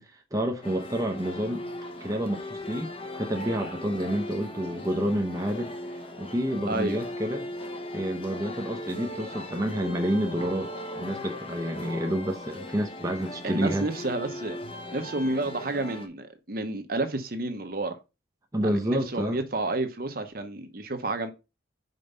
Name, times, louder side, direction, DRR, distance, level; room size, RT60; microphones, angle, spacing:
voice 1, 0.0-1.7 2.0-5.7 6.2-7.5 7.9-13.9 18.5-19.4, equal, 20° right, 0.7 m, -29 dB
sound 1, 0.6-16.1, left 1 dB, 30° left, 0.9 m, -38 dB
voice 2, 6.7-7.0 13.4-14.6 14.9-18.0 18.6-21.3, right 2 dB, 50° right, 0.9 m, -30 dB
5.4 x 4.5 x 5.4 m
head